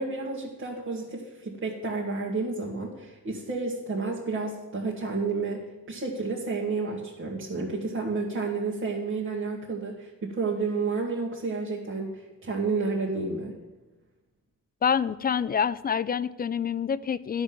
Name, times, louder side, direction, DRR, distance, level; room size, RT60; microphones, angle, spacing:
voice 1, 0.0-13.6, right 3 dB, 45° right, -3 dB, 2.0 m, -31 dB
voice 2, 14.8-17.4, left 7 dB, 30° left, 16 dB, 0.4 m, -27 dB
11.0 x 6.1 x 8.7 m, 1.1 s
cardioid pair, 90°, 30 cm